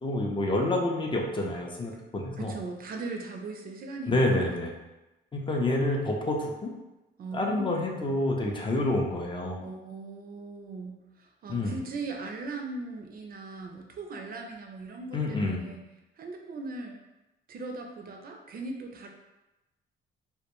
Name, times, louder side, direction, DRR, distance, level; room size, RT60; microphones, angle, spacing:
voice 1, 0.0-2.5 4.1-4.7 5.3-6.7 7.3-9.6 11.5-11.8 15.1-15.7, left 1 dB, 25° left, 0 dB, 0.4 m, -28 dB
voice 2, 2.4-4.5 7.2-7.8 9.6-15.8 16.2-17.0 17.5-19.1, right 3 dB, 50° right, 2 dB, 0.4 m, -39 dB
2.1 x 2.1 x 2.9 m, 1.0 s
cardioid pair, 90°, 20 cm